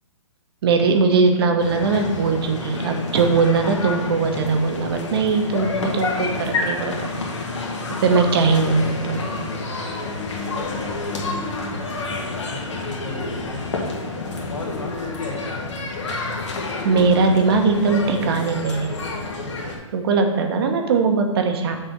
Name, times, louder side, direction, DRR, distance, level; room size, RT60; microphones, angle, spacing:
voice 1, 0.6-7.1 8.0-9.3 16.8-19.0 19.9-21.8, right 4 dB, 50° right, 4 dB, 1.0 m, -20 dB
sound 1, 1.6-19.8, left 3 dB, 65° left, 1.7 m, -29 dB
voice 2, 11.6-14.2 14.4-15.7, left 2 dB, 85° left, -2 dB, 2.5 m, -35 dB
6.6 x 4.1 x 6.1 m, 1.1 s
hypercardioid pair, 145°, 17 cm